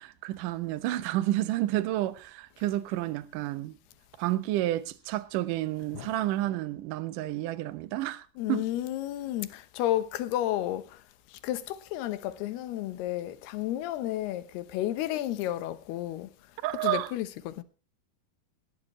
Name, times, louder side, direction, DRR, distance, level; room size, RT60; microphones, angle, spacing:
voice 1, 0.0-3.8 4.2-8.7 16.6-17.1, right 15 dB, 70° right, 2.1 m, -30 dB
voice 2, 8.4-11.0 11.4-16.3 16.8-17.6, left 13 dB, 80° left, 3.0 m, -32 dB
19.0 x 14.5 x 3.1 m
omnidirectional pair, 4.7 m